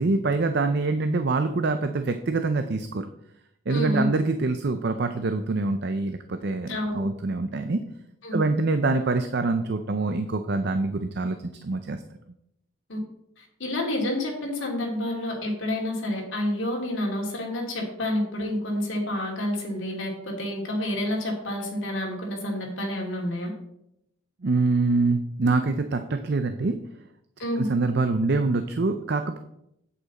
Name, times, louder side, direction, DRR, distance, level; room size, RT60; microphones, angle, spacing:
voice 1, 0.0-3.1 3.7-7.8 8.3-12.0 24.4-26.8 27.6-29.4, right 3 dB, 55° right, 8 dB, 0.5 m, -25 dB
voice 2, 3.7-4.1 6.7-7.1 8.2-8.4 12.9-13.0 13.4-23.5 27.4-27.7, left 1 dB, 65° left, -1 dB, 2.6 m, -29 dB
8.8 x 7.9 x 4.1 m, 0.79 s
head